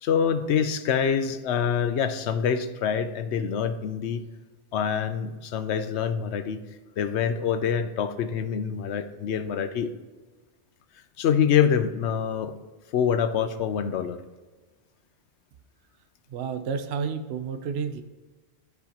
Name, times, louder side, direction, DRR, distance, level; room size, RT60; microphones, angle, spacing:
voice 1, 0.0-4.2 4.7-6.6 7.0-9.9 11.2-12.5 12.9-14.2, left 7 dB, 80° left, 10 dB, 0.9 m, -25 dB
voice 2, 16.3-18.0, right 6 dB, 70° right, 8 dB, 0.9 m, -30 dB
12.5 x 4.8 x 2.9 m, 1.3 s
omnidirectional pair, 1.1 m